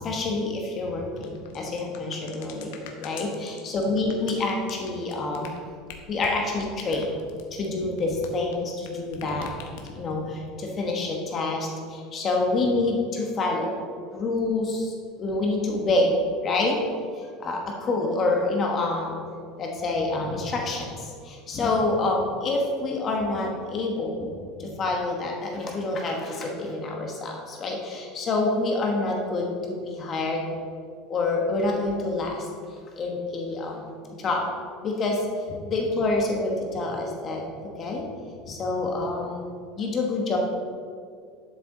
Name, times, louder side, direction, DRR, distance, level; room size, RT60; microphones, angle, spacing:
voice 1, 0.0-5.5 6.1-7.1 7.5-9.5 9.8-13.7 14.1-16.1 16.4-16.8 17.1-19.2 19.6-24.3 24.6-30.5 31.1-32.5 33.0-33.9 34.2-34.5 34.8-35.2 35.5-38.1 38.4-40.4, left 2 dB, 25° left, 0 dB, 1.2 m, -27 dB
sound 1, 1.2-8.9 9.1-10.2, left 7 dB, 75° left, 1.2 m, -44 dB
12.0 x 6.9 x 3.8 m, 2.1 s
cardioid pair, 160°, 0 cm